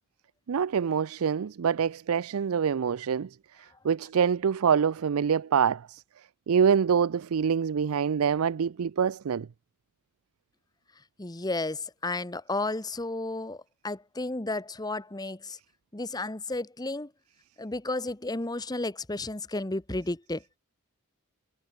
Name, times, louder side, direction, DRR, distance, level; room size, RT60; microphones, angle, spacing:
voice 1, 0.5-3.3 3.8-6.0 6.5-9.5, right 7 dB, 70° right, 0.4 m, -25 dB
voice 2, 11.2-15.6 15.9-17.1 17.6-20.6, left 2 dB, 15° left, 1.0 m, -33 dB
head